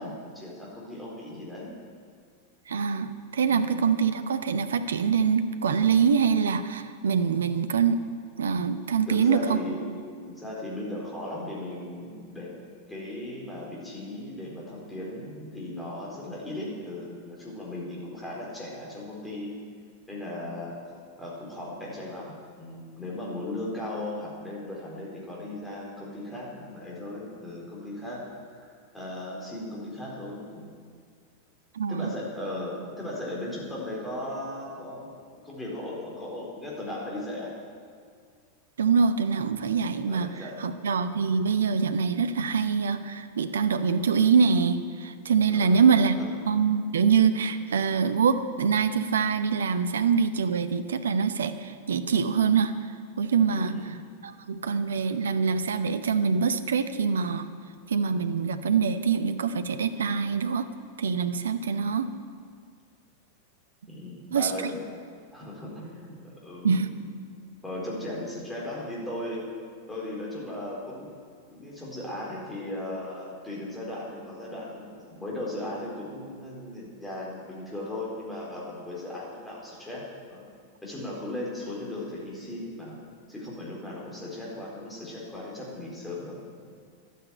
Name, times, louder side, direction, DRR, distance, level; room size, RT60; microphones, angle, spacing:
voice 1, 0.0-1.7 3.5-3.8 9.1-9.9 10.3-12.5 12.9-19.6 20.1-20.8 21.2-28.2 28.5-30.8 31.9-37.5 39.6-40.6 45.4-46.3 53.5-54.0 63.9-64.8 65.3-67.1 67.6-69.5 69.9-71.1 71.5-80.5 80.8-83.0 83.3-86.4, left 1 dB, 10° left, -5 dB, 4.3 m, -37 dB
voice 2, 2.7-8.0 8.4-9.6 31.7-32.1 38.8-40.3 40.6-46.2 46.5-52.7 53.2-53.8 54.2-57.4 57.9-60.7 61.0-62.1 64.3-64.7 66.6-66.9, right 6 dB, 65° right, 11 dB, 0.8 m, -24 dB
12.5 x 9.3 x 8.9 m, 2.1 s
figure-of-eight pair, 90°, 0 cm